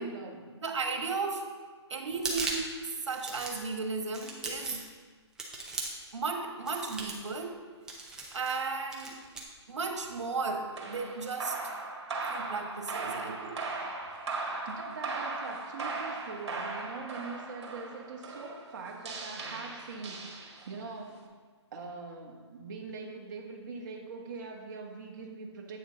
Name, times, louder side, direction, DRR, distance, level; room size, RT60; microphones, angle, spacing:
voice 1, 0.0-0.4 13.1-13.2 14.6-21.3 21.7-25.8, right 4 dB, 40° right, 0 dB, 1.4 m, -42 dB
voice 2, 0.6-1.4 1.9-2.7 3.1-4.8 6.1-7.6 8.3-9.1 9.7-11.6 12.3-13.6, right 4 dB, 80° right, 3 dB, 1.4 m, -34 dB
sound 1, 2.1-2.7 3.1-3.7 4.1-4.9 5.4-6.1 6.7-7.3 7.9-8.6 8.9-9.4, right 3 dB, 5° right, 0.6 m, -38 dB
sound 2, 10.7-20.9, right 3 dB, 65° right, 1.7 m, -38 dB
8.6 x 6.4 x 3.9 m, 1.5 s
hypercardioid pair, 160°, 15 cm